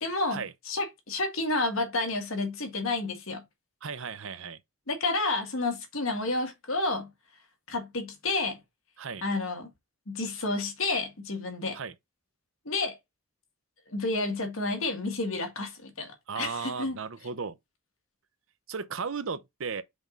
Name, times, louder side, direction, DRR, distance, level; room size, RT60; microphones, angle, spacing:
voice 1, 0.0-3.4 4.9-7.1 7.7-8.6 9.2-9.7 10.1-11.8 12.7-13.0 13.9-17.0, left 2 dB, 65° left, 1.8 m, -30 dB
voice 2, 3.8-4.6 9.0-9.2 11.7-11.9 16.3-17.6 18.7-19.8, right 5 dB, 60° right, 0.7 m, -35 dB
5.1 x 3.8 x 5.2 m
head